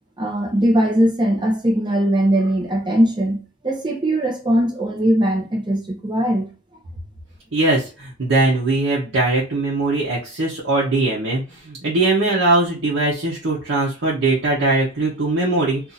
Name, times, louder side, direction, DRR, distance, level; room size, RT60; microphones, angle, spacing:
voice 1, 0.2-3.4 3.6-6.5, right 1 dB, 25° right, 0.9 m, -19 dB
voice 2, 7.5-15.8, right 2 dB, 85° right, 0.9 m, -20 dB
2.7 x 2.5 x 3.9 m
head